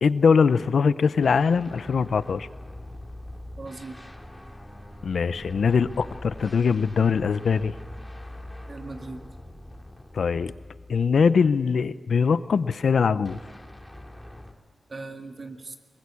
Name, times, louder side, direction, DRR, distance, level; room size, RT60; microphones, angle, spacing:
voice 1, 0.0-2.5 5.0-7.7 10.1-10.5 10.9-13.4, left 5 dB, 85° left, 14 dB, 0.7 m, -22 dB
sound 1, 1.2-11.5 13.2-14.5, left 1 dB, 10° left, 2.5 m, -43 dB
voice 2, 3.6-4.1 8.7-9.2 14.9-15.8, right 3 dB, 50° right, 5 dB, 2.0 m, -39 dB
22.0 x 21.0 x 8.5 m, 1.5 s
wide cardioid pair, 85°, 0 cm